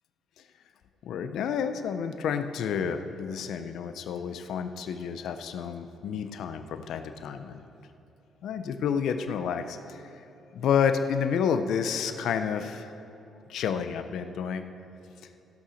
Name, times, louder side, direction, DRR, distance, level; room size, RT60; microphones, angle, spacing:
voice 1, 1.0-7.6 8.4-10.1 10.5-12.9 13.5-14.6, left 7 dB, 75° left, 9 dB, 0.6 m, -30 dB
15.5 x 5.8 x 6.3 m, 2.8 s
cardioid pair, 90°, 0 cm